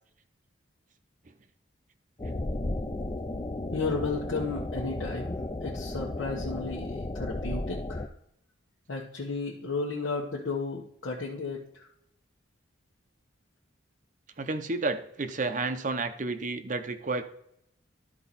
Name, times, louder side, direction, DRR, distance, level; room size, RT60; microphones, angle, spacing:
sound 1, 2.2-8.1, left 2 dB, 25° left, 0.5 m, -34 dB
voice 1, 3.7-8.1 8.9-11.6, left 3 dB, 90° left, -3 dB, 1.1 m, -33 dB
voice 2, 14.4-17.2, right 3 dB, 40° right, 9 dB, 0.7 m, -31 dB
12.0 x 4.7 x 4.1 m, 0.73 s
head